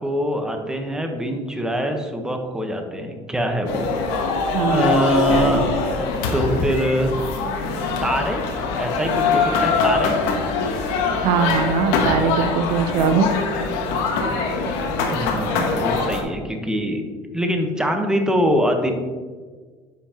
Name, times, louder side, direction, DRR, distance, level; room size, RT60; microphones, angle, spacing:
voice 1, 0.0-3.9 4.7-5.6 6.3-7.3 8.0-8.5 8.8-10.2 15.1-17.0 17.3-18.9, equal, 5° right, 4 dB, 1.1 m, -23 dB
sound 1, 3.7-16.2, left 4 dB, 85° left, 1.2 m, -23 dB
voice 2, 4.5-4.9 11.2-13.3, right 6 dB, 80° right, 9 dB, 0.6 m, -20 dB
9.6 x 5.7 x 3.0 m, 1.5 s
supercardioid pair, 95°, 12 cm